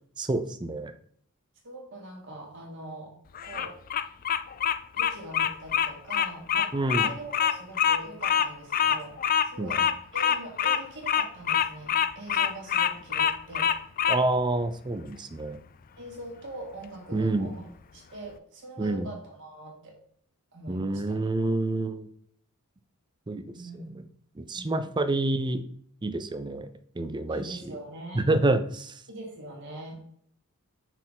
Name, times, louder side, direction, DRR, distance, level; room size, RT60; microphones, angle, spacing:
voice 1, 0.2-0.9 6.7-7.1 9.6-9.7 14.1-15.6 17.1-17.5 18.8-19.1 20.7-22.1 23.3-23.8 24.4-25.6 26.0-26.7 27.0-27.8 28.1-29.0, right 2 dB, 20° right, 9 dB, 0.5 m, -28 dB
voice 2, 1.6-3.1 3.4-3.8 4.9-9.2 9.4-9.9 10.1-13.7 16.0-17.7 17.9-20.0 20.5-21.2 23.5-24.0 24.5-24.9 27.3-28.3 29.1-30.0, right 1 dB, 55° right, -1 dB, 2.3 m, -42 dB
Bird vocalization bird call bird song, 3.4-14.2, left 8 dB, 40° left, 0.4 m, -25 dB
6.0 x 4.6 x 3.9 m, 0.63 s
head